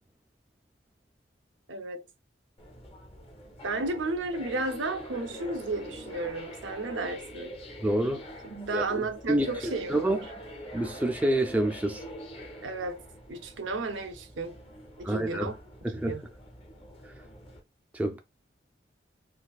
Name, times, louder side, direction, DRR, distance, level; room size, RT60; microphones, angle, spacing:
voice 1, 1.7-2.0 3.6-7.5 8.4-10.3 12.6-13.0 13.3-14.6 15.0-15.5 15.9-16.2, right 3 dB, 85° right, 0.6 m, -33 dB
sound 1, 2.6-17.6, equal, 30° left, 0.7 m, -45 dB
voice 2, 7.8-8.2 8.7-10.2 10.7-12.0 15.0-15.5 15.8-16.1 17.9-18.2, right 1 dB, 10° right, 0.3 m, -28 dB
3.9 x 2.5 x 2.3 m
head